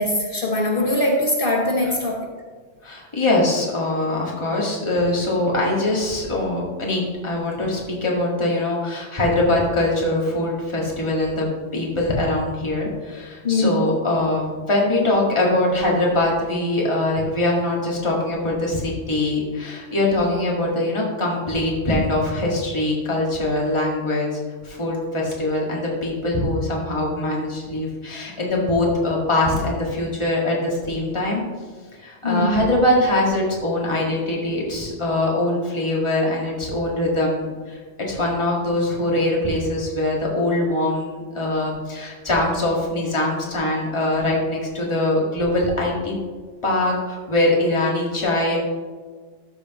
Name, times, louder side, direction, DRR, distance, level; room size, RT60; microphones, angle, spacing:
voice 1, 0.0-2.3 13.4-13.8 32.2-32.7, left 1 dB, 50° left, 1 dB, 1.1 m, -21 dB
voice 2, 2.8-11.5 11.7-24.3 24.7-31.4 32.0-37.5 38.1-46.2 46.6-48.6, left 1 dB, 25° left, -4 dB, 1.8 m, -22 dB
13.0 x 6.4 x 3.0 m, 1.5 s
omnidirectional pair, 1.3 m